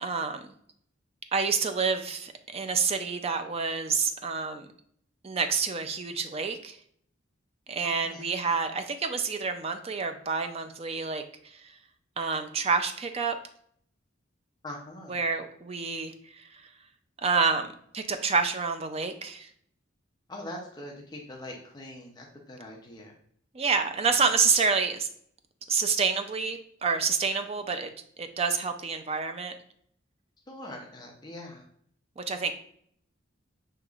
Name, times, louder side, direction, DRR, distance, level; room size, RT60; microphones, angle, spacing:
voice 1, 0.0-0.5 1.3-4.7 5.2-6.8 7.7-11.7 12.2-13.4 15.1-16.6 17.2-19.5 23.5-25.1 25.7-27.9 28.2-29.5 32.2-32.5, right 5 dB, 30° right, 8 dB, 0.4 m, -28 dB
voice 2, 8.0-8.3 14.6-15.2 20.3-23.1 30.5-31.7, left 1 dB, 20° left, 0 dB, 0.6 m, -42 dB
6.4 x 2.9 x 2.4 m, 0.65 s
head